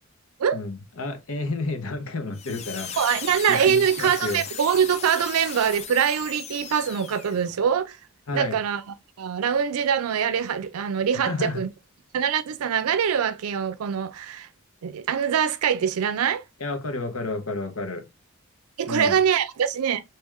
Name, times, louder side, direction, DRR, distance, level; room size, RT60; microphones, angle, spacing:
voice 1, 0.5-3.2 3.5-4.4 8.3-8.6 11.2-11.6 16.6-18.1 18.9-19.2, left 3 dB, 75° left, 0.9 m, -31 dB
sound 1, 2.3-7.5, left 7 dB, 30° left, 0.4 m, -37 dB
voice 2, 3.0-8.0 8.3-11.7 12.1-14.5 14.8-16.4 18.8-20.0, right 7 dB, 90° right, 0.4 m, -24 dB
3.5 x 3.0 x 3.1 m
head